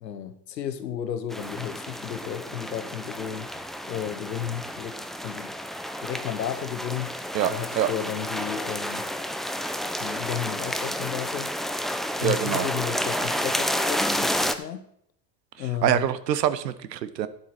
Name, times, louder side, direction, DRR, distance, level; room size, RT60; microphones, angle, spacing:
voice 1, 0.0-3.5 3.8-5.5 6.0-7.2 7.5-9.1 9.9-11.5 12.2-14.9 15.6-16.1, left 9 dB, 85° left, 1.1 m, -33 dB
sound 1, 1.3-14.5, equal, ahead, 0.7 m, -30 dB
voice 2, 7.3-7.9 12.2-12.7 15.8-17.3, right 10 dB, 85° right, 1.0 m, -25 dB
11.5 x 9.4 x 4.3 m
hypercardioid pair, 75°, 49 cm